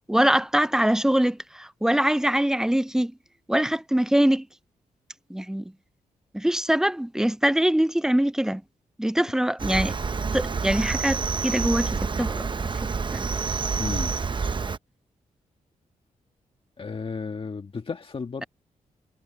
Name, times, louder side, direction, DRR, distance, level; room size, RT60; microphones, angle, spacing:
voice 1, 0.1-3.1 3.5-4.5 5.3-5.6 6.3-8.6 9.0-9.9 10.3-12.5 13.1-13.3, right 1 dB, 5° right, 0.3 m, -23 dB
Cricket, 9.6-14.8, right 5 dB, 35° right, 0.8 m, -28 dB
voice 2, 13.8-14.1 16.8-18.5, left 5 dB, 40° left, 1.7 m, -33 dB
cardioid pair, 90°, 14 cm